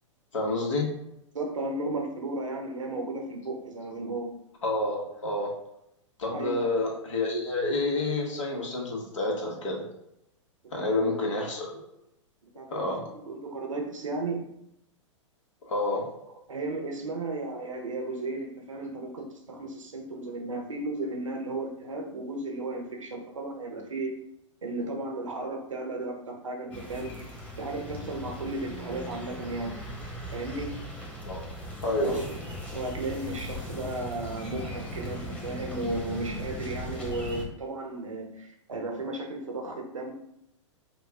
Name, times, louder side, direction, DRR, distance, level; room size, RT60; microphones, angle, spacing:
voice 1, 0.3-0.9 4.6-5.5 6.2-9.8 10.7-11.9 12.7-13.0 15.7-16.0 31.2-31.4 31.8-32.2, left 2 dB, 75° left, -1 dB, 1.5 m, -29 dB
voice 2, 1.3-4.3 6.3-6.7 10.7-11.2 12.6-12.9 13.2-14.4 16.5-24.1 24.6-27.1 27.6-29.8 30.3-30.8 32.0-32.4 32.7-40.1, right 2 dB, 85° right, 2 dB, 1.0 m, -34 dB
sound 1, 26.7-37.5, left 1 dB, 10° left, 1.0 m, -38 dB
5.1 x 2.4 x 3.5 m, 0.80 s
hypercardioid pair, 105°, 16 cm